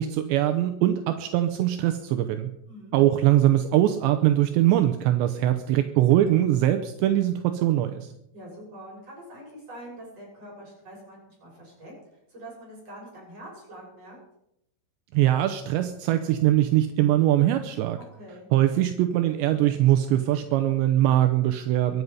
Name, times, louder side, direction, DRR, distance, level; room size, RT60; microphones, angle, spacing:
voice 1, 0.0-2.5 2.9-8.1 15.1-18.0 18.5-22.0, right 13 dB, 80° right, 7 dB, 2.7 m, -22 dB
voice 2, 2.7-3.0 8.3-11.9 12.3-14.2 18.0-18.5, right 1 dB, 30° right, -4 dB, 7.2 m, -44 dB
23.0 x 9.6 x 5.5 m, 0.82 s
omnidirectional pair, 5.7 m